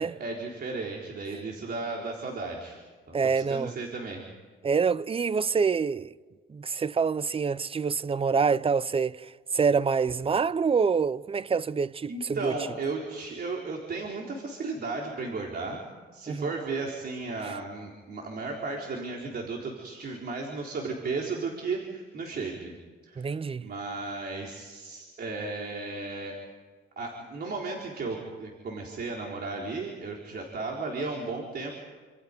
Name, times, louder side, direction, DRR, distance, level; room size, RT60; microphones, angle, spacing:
voice 1, 0.0-2.8 3.1-4.2 12.1-15.8 16.1-22.7 23.0-23.3 23.6-26.4 27.0-31.7, right 3 dB, 50° right, 4.0 m, -34 dB
voice 2, 3.1-3.7 4.6-6.1 6.5-12.5 16.3-16.5 17.4-17.5 23.2-23.7, right 5 dB, 30° right, 0.7 m, -26 dB
29.0 x 26.5 x 5.3 m
cardioid pair, 90°, 20 cm